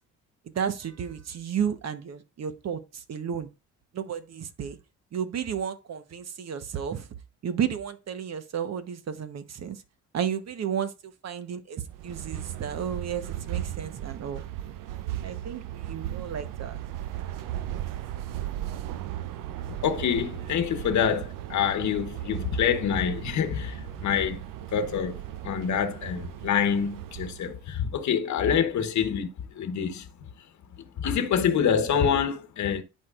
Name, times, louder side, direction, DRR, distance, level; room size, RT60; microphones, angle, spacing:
voice 1, 0.5-3.5 3.9-4.8 5.1-7.1 7.4-9.8 10.1-14.4 15.2-16.8, right 8 dB, 50° right, 1.0 m, -32 dB
sound 1, 11.9-27.6, right 13 dB, 75° right, 0.7 m, -36 dB
voice 2, 19.8-24.4 24.7-30.1 31.0-32.8, left 7 dB, 60° left, 1.1 m, -26 dB
11.0 x 4.6 x 2.4 m
supercardioid pair, 75°, 33 cm